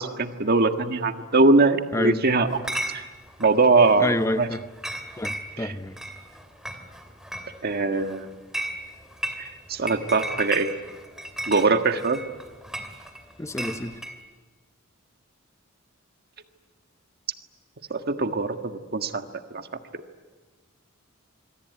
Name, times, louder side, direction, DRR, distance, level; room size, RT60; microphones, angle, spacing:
voice 1, 0.0-2.6 2.9-3.0 3.4-4.5 5.6-5.7 7.6-8.3 9.4-10.7 11.5-12.2 17.9-19.2 19.5-19.6, right 3 dB, 50° right, 7 dB, 1.6 m, -22 dB
voice 2, 1.9-2.2 4.0-4.6 5.2-6.0 13.4-14.0, left 1 dB, 15° left, 11 dB, 0.9 m, -28 dB
Chatter / Chink clink, 2.5-14.2, right 1 dB, 5° right, 2.6 m, -36 dB
26.5 x 22.5 x 9.5 m, 1.4 s
head